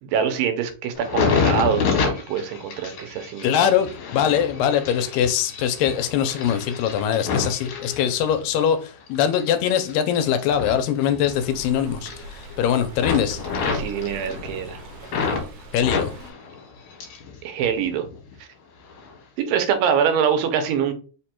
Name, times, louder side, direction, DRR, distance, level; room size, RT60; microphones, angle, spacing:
voice 1, 0.0-3.7 13.7-14.8 17.4-18.1 18.4-18.5 19.4-20.9, right 7 dB, 90° right, 2.5 m, -24 dB
sound 1, 0.9-8.6 9.1-11.7 11.9-12.6 12.9-15.4 15.8-17.3 17.6-18.3 18.9-19.1, left 5 dB, 65° left, 2.4 m, -28 dB
voice 2, 3.4-13.4 15.7-16.1, left 9 dB, 85° left, 2.3 m, -22 dB
Stream, 11.3-16.3, right 2 dB, 75° right, 1.8 m, -41 dB
5.4 x 2.2 x 4.3 m
omnidirectional pair, 3.9 m